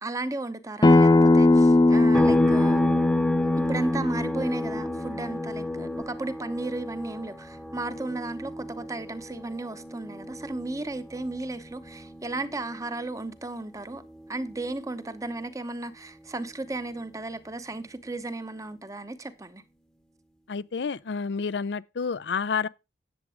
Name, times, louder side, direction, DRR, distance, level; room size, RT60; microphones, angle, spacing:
voice 1, 0.0-2.8 3.7-14.0 14.3-19.6, right 2 dB, 20° right, 0.9 m, -34 dB
Acoustic guitar, 0.8-6.0, left 2 dB, 25° left, 0.5 m, -20 dB
sound 1, 2.1-15.7 16.0-18.2, left 1 dB, 5° left, 1.0 m, -35 dB
voice 2, 20.5-22.7, left 5 dB, 75° left, 0.5 m, -29 dB
10.5 x 7.4 x 4.9 m
head